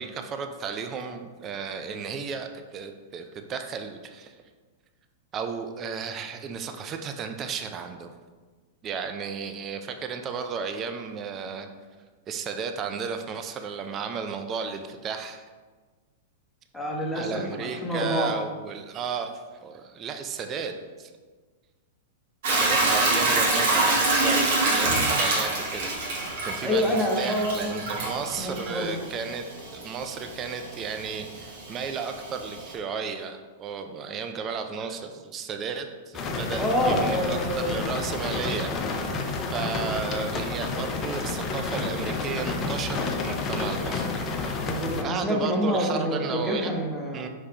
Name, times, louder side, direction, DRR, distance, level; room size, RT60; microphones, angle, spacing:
voice 1, 0.0-4.3 5.3-8.1 8.8-11.7 12.3-15.4 17.1-21.1 22.5-29.5 29.7-44.6 45.0-46.7 47.1-47.3, right 5 dB, 30° right, 6 dB, 0.4 m, -34 dB
voice 2, 16.7-18.3 26.6-27.7 28.4-29.0 36.6-37.8 38.3-38.4 44.6-47.3, equal, 5° left, -2 dB, 0.9 m, -27 dB
Hiss / Toilet flush / Trickle dribble, 22.4-32.7, right 2 dB, 60° right, 1.3 m, -26 dB
sound 1, 36.1-45.0, left 3 dB, 30° left, 0.5 m, -30 dB
4.8 x 3.2 x 2.9 m, 1.4 s
hypercardioid pair, 105°, 0 cm